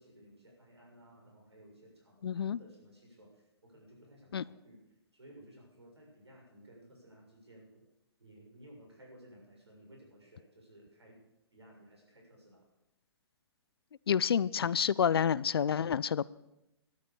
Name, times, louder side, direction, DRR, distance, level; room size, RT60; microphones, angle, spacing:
voice 1, 0.0-4.8 5.1-7.8 8.2-11.2 11.5-12.6, right 1 dB, 80° right, -1 dB, 6.9 m, -57 dB
voice 2, 2.2-2.6 4.3-4.4 14.1-16.3, left 8 dB, 65° left, 21 dB, 0.5 m, -29 dB
12.5 x 11.5 x 6.9 m, 0.89 s
figure-of-eight pair, 120°, 14 cm